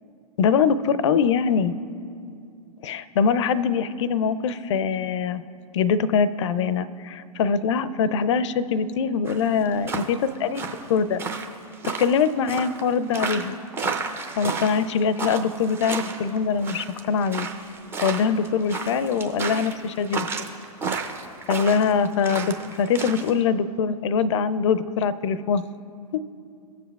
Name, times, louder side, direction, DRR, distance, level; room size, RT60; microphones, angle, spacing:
voice 1, 0.4-1.8 2.8-5.4 5.7-11.2 12.0-13.6 14.4-17.5 18.0-20.5 21.5-25.6 26.1-26.2, left 6 dB, 50° left, 16 dB, 0.4 m, -23 dB
sound 1, 9.3-23.3, right 4 dB, 10° right, 0.5 m, -32 dB
17.0 x 7.3 x 2.3 m, 2.5 s
figure-of-eight pair, 120°, 20 cm